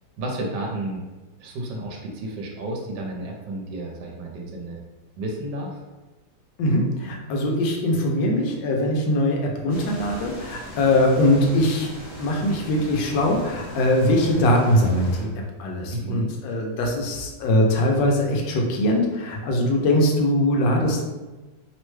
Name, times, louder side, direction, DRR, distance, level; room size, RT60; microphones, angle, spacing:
voice 1, 0.2-1.0 1.4-4.8 5.2-5.8 15.9-16.3, right 1 dB, 70° right, 0 dB, 1.2 m, -32 dB
voice 2, 6.6-11.9 12.2-15.3 15.6-21.0, left 1 dB, 75° left, 1 dB, 1.3 m, -21 dB
sound 1, 9.7-15.2, left 1 dB, 35° left, 0.5 m, -39 dB
3.3 x 2.1 x 3.1 m, 1.2 s
omnidirectional pair, 2.0 m